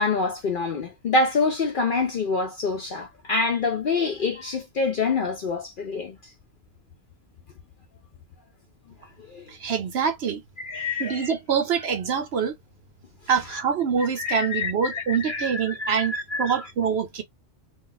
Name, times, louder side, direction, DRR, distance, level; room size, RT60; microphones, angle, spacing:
voice 1, 0.0-6.2 9.3-9.4 10.6-11.3 14.2-16.6, left 3 dB, 60° left, 0.6 m, -26 dB
voice 2, 9.5-10.4 11.0-12.5 13.3-16.1 16.4-17.2, right 7 dB, 60° right, 0.8 m, -25 dB
2.3 x 2.3 x 3.8 m
omnidirectional pair, 1.3 m